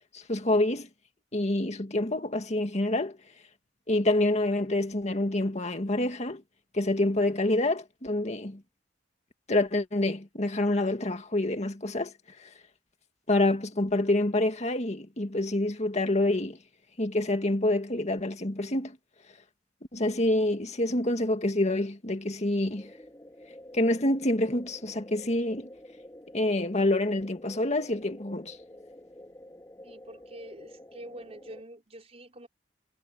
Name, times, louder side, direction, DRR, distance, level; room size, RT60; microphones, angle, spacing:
voice 1, 0.1-0.9 1.3-3.2 3.9-6.4 6.7-8.6 9.5-12.1 12.4-12.5 13.3-16.6 17.0-19.0 19.9-22.9 23.7-25.7 26.3-28.6, left 1 dB, 40° left, 2.0 m, -27 dB
sound 1, 22.7-31.6, left 1 dB, 20° left, 3.0 m, -49 dB
voice 2, 29.8-32.5, right 1 dB, 35° right, 5.4 m, -46 dB
head